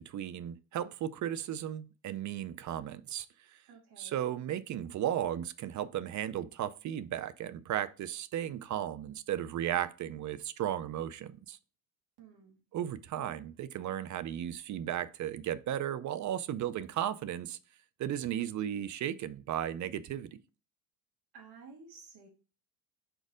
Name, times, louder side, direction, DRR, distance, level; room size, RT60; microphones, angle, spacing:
voice 1, 0.0-3.3 4.0-11.6 12.7-17.6 18.0-20.3, right 11 dB, 40° right, 0.5 m, -35 dB
voice 2, 3.7-4.2 12.2-12.6 21.3-22.3, right 5 dB, 60° right, 2.3 m, -53 dB
4.5 x 4.4 x 5.0 m
supercardioid pair, 95°, 44 cm